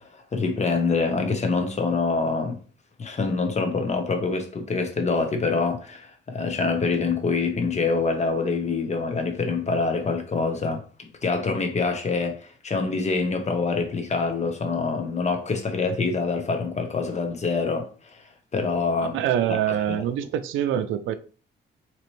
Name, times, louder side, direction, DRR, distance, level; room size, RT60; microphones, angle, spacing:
voice 1, 0.0-2.6 3.0-18.2 18.5-19.2 19.5-19.6 19.9-20.1, left 4 dB, 35° left, 1.0 m, -25 dB
voice 2, 19.1-21.2, right 10 dB, 80° right, 0.4 m, -25 dB
4.1 x 3.0 x 3.1 m
cardioid pair, 90°, 20 cm